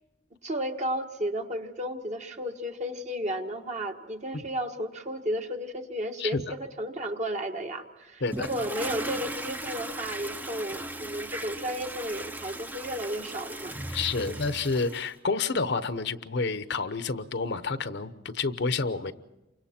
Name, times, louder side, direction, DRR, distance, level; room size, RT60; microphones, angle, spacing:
voice 1, 0.4-13.8 14.2-14.4, equal, 40° right, 4 dB, 1.4 m, -33 dB
voice 2, 6.2-6.5 8.2-8.5 13.9-19.1, left 4 dB, 65° left, 12 dB, 0.9 m, -29 dB
Toilet flush, 8.3-15.1, right 1 dB, 10° right, 0.7 m, -37 dB
29.0 x 24.5 x 4.4 m, 1.0 s
head